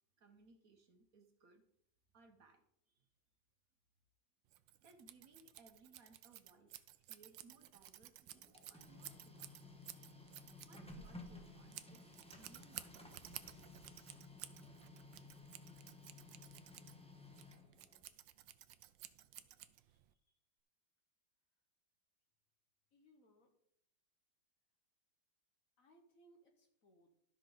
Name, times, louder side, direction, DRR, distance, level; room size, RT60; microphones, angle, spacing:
voice 1, 0.2-1.6 2.1-3.1 4.8-9.8 10.7-12.1 12.4-14.3 15.4-15.5, right 4 dB, 55° right, 4 dB, 1.3 m, -66 dB
Scissors, 4.5-20.1, right 13 dB, 90° right, 1.3 m, -55 dB
Printer, 8.3-18.0, left 2 dB, 5° left, 0.9 m, -56 dB
voice 2, 19.7-20.4 22.9-23.5 25.8-27.1, right 1 dB, 50° left, 4 dB, 1.6 m, -69 dB
12.5 x 5.9 x 3.9 m, 0.70 s
omnidirectional pair, 2.0 m